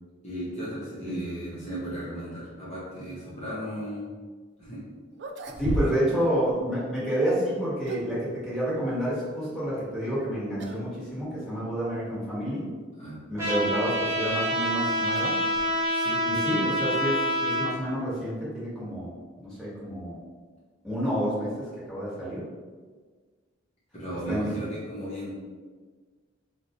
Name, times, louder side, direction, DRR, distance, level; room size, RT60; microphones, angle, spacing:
voice 1, 0.2-4.1 4.6-4.8 5.7-5.9 13.0-13.2 15.9-16.2 23.9-25.3, equal, 40° left, -9 dB, 0.8 m, -36 dB
sound 1, 4.6-4.7 5.1-6.2 6.5-6.6 7.5-8.2 10.0-10.3 10.6-10.9 11.2-11.3 12.1-12.2 14.0-16.1, right 1 dB, 60° right, 0.3 m, -35 dB
voice 2, 5.6-12.7 13.3-15.3 16.3-19.1 19.4-20.2 20.8-22.4 24.3-24.6, equal, ahead, -10 dB, 1.3 m, -29 dB
Trumpet, 13.4-17.7, equal, 15° right, 0.9 m, -27 dB
4.2 x 2.2 x 2.9 m, 1.5 s
head